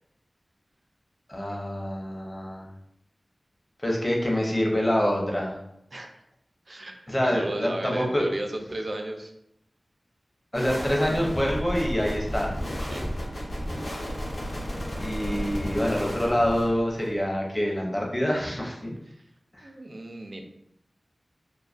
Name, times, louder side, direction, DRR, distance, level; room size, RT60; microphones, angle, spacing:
voice 1, 1.3-2.7 3.8-5.6 7.1-8.2 10.5-12.5 15.0-19.0 19.6-19.7, equal, 25° left, -1 dB, 0.6 m, -26 dB
voice 2, 5.9-6.2 6.7-9.3 12.9-13.1 19.1-19.2 19.6-20.5, right 1 dB, 55° right, 4 dB, 0.4 m, -35 dB
sound 1, 10.5-17.2, equal, 70° left, 0.9 m, -33 dB
2.4 x 2.3 x 2.4 m, 0.77 s
wide cardioid pair, 50°, 0 cm